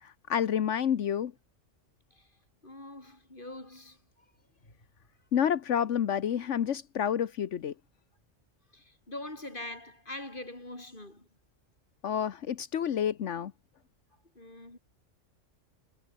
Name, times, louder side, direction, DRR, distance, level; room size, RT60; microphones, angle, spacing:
voice 1, 0.0-1.3 5.3-7.7 12.0-13.5, left 9 dB, 75° left, 1.2 m, -29 dB
voice 2, 2.6-4.3 4.6-4.7 8.7-11.3 14.3-14.8, left 2 dB, 45° left, 6.0 m, -44 dB
omnidirectional pair, 1.3 m